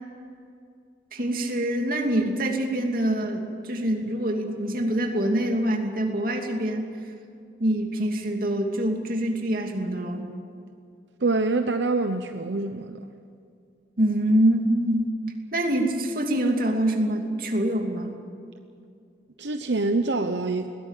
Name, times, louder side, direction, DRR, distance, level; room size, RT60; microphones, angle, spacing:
voice 1, 1.1-6.9 7.6-10.3 14.0-15.1 15.5-18.2, right 1 dB, 50° right, 2 dB, 2.8 m, -25 dB
voice 2, 11.2-13.0 19.4-20.7, right 3 dB, 85° right, 7 dB, 0.9 m, -25 dB
21.0 x 17.0 x 9.2 m, 2.4 s
head